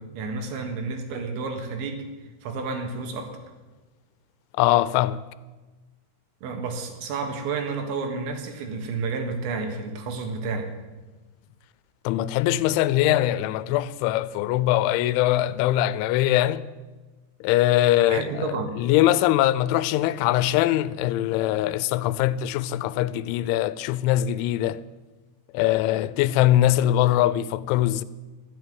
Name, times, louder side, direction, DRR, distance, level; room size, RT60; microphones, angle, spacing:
voice 1, 0.0-2.0 2.4-3.3 6.4-10.7 17.8-18.8, right 4 dB, 75° right, 3.9 m, -31 dB
voice 2, 4.6-5.2 12.1-16.7 17.4-24.8 25.5-28.0, left 14 dB, 85° left, 3.0 m, -22 dB
14.5 x 8.1 x 9.3 m
omnidirectional pair, 5.4 m